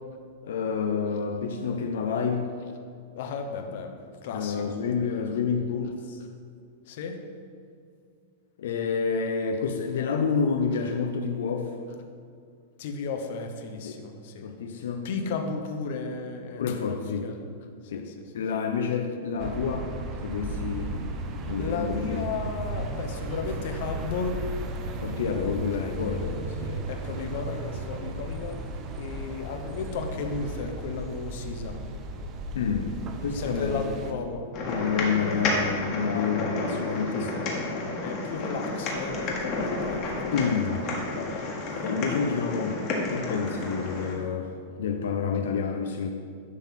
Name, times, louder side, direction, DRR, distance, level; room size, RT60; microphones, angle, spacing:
voice 1, 0.4-2.5 4.3-6.2 8.6-11.7 13.8-14.0 14.4-15.1 16.6-17.3 17.9-18.1 18.3-19.9 20.2-21.0 21.4-22.3 25.0-26.8 32.5-33.8 34.7-37.3 40.3-40.8 41.8-42.8 43.1-46.1, left 5 dB, 80° left, 4 dB, 0.7 m, -29 dB
voice 2, 3.1-5.4 6.9-7.2 12.8-14.5 15.0-17.4 17.8-18.1 21.6-24.4 26.9-28.6 28.9-31.8 33.3-34.5 36.0-40.9 41.1-41.7, left 5 dB, 55° left, 5 dB, 1.1 m, -35 dB
sound 1, 19.4-34.1, right 2 dB, 25° right, 0.7 m, -35 dB
sound 2, 34.5-44.1, left 2 dB, 30° left, 1.7 m, -31 dB
11.0 x 3.9 x 7.5 m, 2.3 s
supercardioid pair, 160°, 0 cm